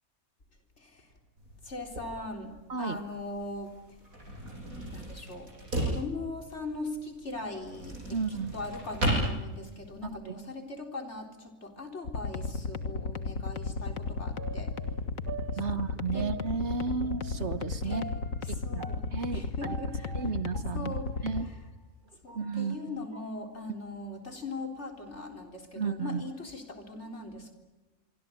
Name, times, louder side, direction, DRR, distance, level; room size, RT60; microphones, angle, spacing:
voice 1, 0.8-1.1 1.6-3.8 4.9-5.5 5.8-8.0 8.5-14.7 15.7-15.8 16.1-16.3 17.8-18.2 18.6-19.0 19.3-20.1 20.7-21.3 22.2-27.5, left 2 dB, 55° left, 4 dB, 4.2 m, -40 dB
sound 1, 1.4-10.1, right 1 dB, 85° right, 8.2 m, -36 dB
voice 2, 8.1-8.5 10.2-10.4 15.6-18.0 18.5-18.8 19.1-19.8 20.1-20.9 21.2-21.5 22.3-23.1 25.7-26.2, right 5 dB, 55° right, 12 dB, 1.4 m, -33 dB
sound 2, 12.1-21.4, left 4 dB, 75° left, 2.0 m, -34 dB
sound 3, 14.4-21.6 22.1-23.4 23.8-23.9, right 4 dB, 35° right, 1.9 m, -46 dB
26.0 x 24.0 x 9.3 m, 1.1 s
omnidirectional pair, 1.4 m